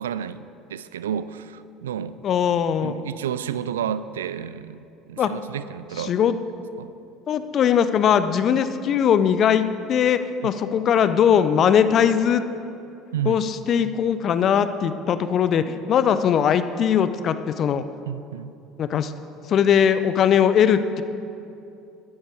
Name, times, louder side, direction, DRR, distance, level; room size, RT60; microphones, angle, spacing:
voice 1, 0.0-2.2 2.8-6.1 6.8-6.9 13.1-13.4 18.1-18.5, right 9 dB, 85° right, 14 dB, 0.3 m, -31 dB
voice 2, 2.2-2.9 5.2-5.3 6.0-6.3 7.3-12.4 13.3-17.8 18.8-19.1 19.5-21.0, left 8 dB, 50° left, 12 dB, 0.6 m, -20 dB
12.0 x 9.5 x 4.6 m, 2.7 s
hypercardioid pair, 65°, 0 cm